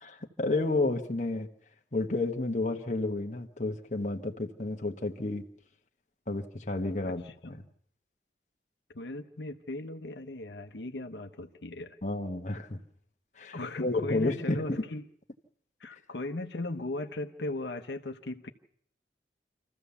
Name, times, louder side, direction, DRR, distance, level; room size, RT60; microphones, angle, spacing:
voice 1, 0.0-1.5 1.9-5.4 6.3-7.6 12.0-12.8 13.4-14.8, left 2 dB, 40° left, 3 dB, 1.2 m, -31 dB
voice 2, 7.0-7.6 8.9-12.0 13.5-15.0 15.8-18.5, left 2 dB, 80° left, 6 dB, 1.0 m, -38 dB
26.5 x 14.5 x 7.0 m, 0.67 s
head